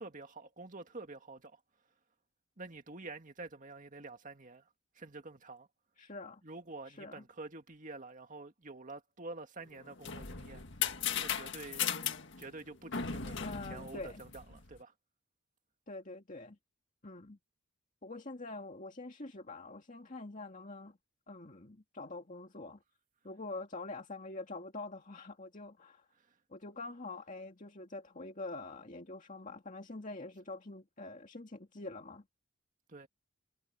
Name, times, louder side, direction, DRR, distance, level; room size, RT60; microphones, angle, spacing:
voice 1, 0.0-1.6 2.6-4.7 5.0-5.7 6.4-10.6 11.2-11.9 12.4-14.9 26.2-26.3 32.9-33.1, right 3 dB, 40° right, 2.1 m, -48 dB
voice 2, 6.0-6.4 6.9-7.2 13.4-14.2 15.9-16.6 17.0-17.4 18.0-21.0 21.3-22.8 23.2-26.1 26.5-32.2, left 2 dB, 40° left, 2.1 m, -45 dB
sound 1, 9.7-14.7, left 8 dB, 60° left, 1.9 m, -37 dB
head